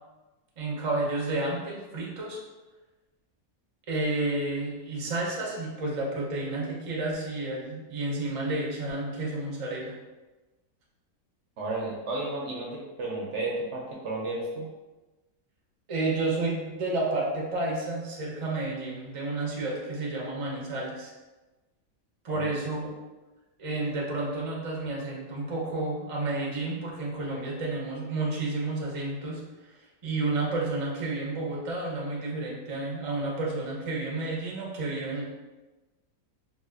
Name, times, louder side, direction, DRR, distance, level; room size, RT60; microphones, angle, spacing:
voice 1, 0.6-2.4 3.9-9.9 15.9-21.1 22.2-22.9 23.6-29.7 30.0-35.2, right 2 dB, 40° right, -3 dB, 0.4 m, -31 dB
voice 2, 11.6-14.7 22.3-22.5, right 2 dB, 65° right, -3 dB, 0.8 m, -33 dB
4.1 x 2.4 x 2.4 m, 1.1 s
omnidirectional pair, 1.5 m